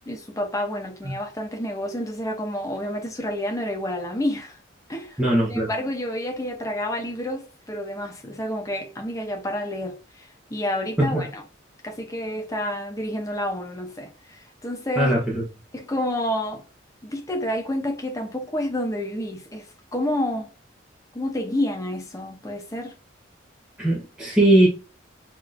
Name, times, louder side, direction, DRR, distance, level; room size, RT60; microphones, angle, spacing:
voice 1, 0.1-4.6 4.9-5.2 5.5-11.4 11.8-15.1 15.7-16.6 17.0-19.7 19.9-20.5 21.1-23.0, left 1 dB, 15° left, 0.7 m, -29 dB
voice 2, 5.2-5.7 11.0-11.3 15.0-15.4 23.8-24.7, right 1 dB, 5° right, 1.0 m, -20 dB
5.8 x 3.0 x 2.5 m
head